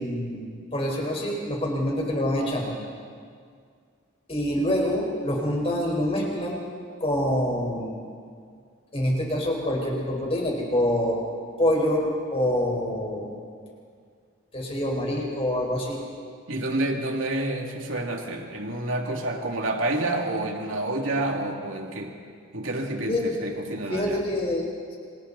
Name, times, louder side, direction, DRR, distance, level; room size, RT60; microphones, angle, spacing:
voice 1, 0.0-2.7 4.3-6.6 7.0-8.0 8.9-11.2 11.6-13.3 14.5-16.0 23.1-23.3 23.9-25.0, left 1 dB, 30° left, -1 dB, 5.0 m, -26 dB
voice 2, 16.5-22.1 22.5-24.2, right 1 dB, 70° right, 1 dB, 2.8 m, -29 dB
28.0 x 27.5 x 4.2 m, 2.1 s
head